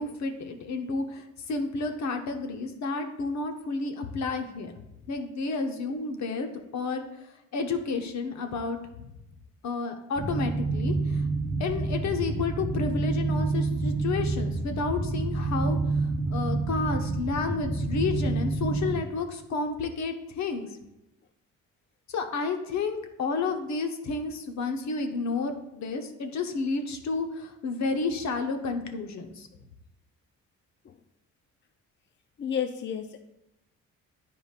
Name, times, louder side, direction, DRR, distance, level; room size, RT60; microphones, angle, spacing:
voice 1, 0.0-4.7 5.1-6.5 6.7-7.0 7.5-9.1 9.6-11.2 11.6-20.7 22.1-29.5, left 4 dB, 65° left, 5 dB, 0.9 m, -31 dB
sound 1, 10.2-19.0, right 3 dB, 55° right, 1.0 m, -28 dB
voice 2, 32.4-33.2, left 8 dB, 40° left, 7 dB, 0.4 m, -31 dB
9.3 x 4.9 x 2.4 m, 0.92 s
cardioid pair, 90°, 30 cm